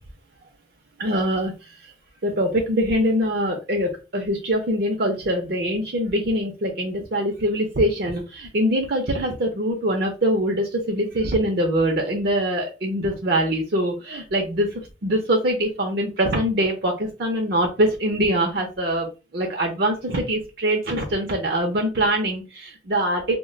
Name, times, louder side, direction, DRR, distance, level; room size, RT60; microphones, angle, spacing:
voice 1, 1.0-1.5 2.2-14.7 15.0-19.1 19.3-23.4, equal, 55° right, 2 dB, 0.6 m, -23 dB
2.3 x 2.1 x 3.7 m, 0.30 s
head